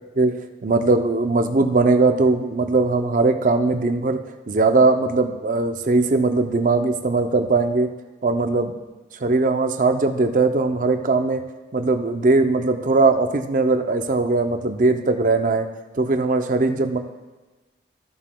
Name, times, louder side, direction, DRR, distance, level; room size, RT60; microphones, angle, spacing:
voice 1, 0.2-7.9 8.2-8.7 9.2-11.4 11.7-15.7 15.9-17.0, right 3 dB, 45° right, 7 dB, 0.5 m, -20 dB
15.0 x 7.4 x 2.2 m, 1.2 s
head